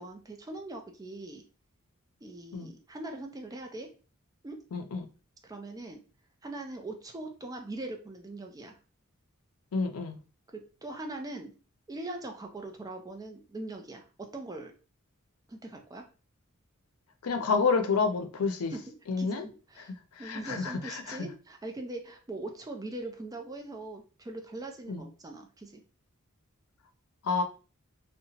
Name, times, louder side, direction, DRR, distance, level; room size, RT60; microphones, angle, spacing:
voice 1, 0.0-1.4 2.2-3.9 4.4-4.6 5.4-6.0 6.4-8.8 10.5-11.5 11.9-14.7 15.5-16.1 18.7-19.9 20.2-25.8, right 2 dB, 15° right, 3 dB, 0.4 m, -41 dB
voice 2, 4.7-5.1 9.7-10.2 17.2-18.7 19.1-19.5 20.2-21.3 24.9-25.0 27.2-27.4, left 4 dB, 85° left, 6 dB, 0.5 m, -29 dB
2.8 x 2.1 x 2.7 m, 0.35 s
head